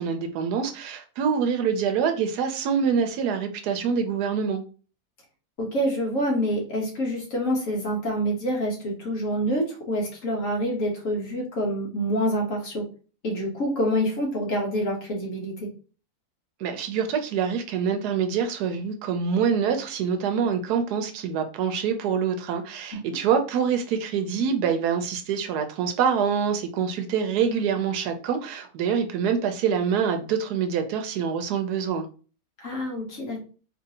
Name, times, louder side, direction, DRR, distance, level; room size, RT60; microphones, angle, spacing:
voice 1, 0.0-4.6 16.6-32.1, right 7 dB, 85° right, 1.1 m, -25 dB
voice 2, 5.6-12.8 13.2-15.7 32.6-33.4, equal, 60° left, 1.6 m, -27 dB
4.4 x 2.6 x 2.8 m
omnidirectional pair, 1.6 m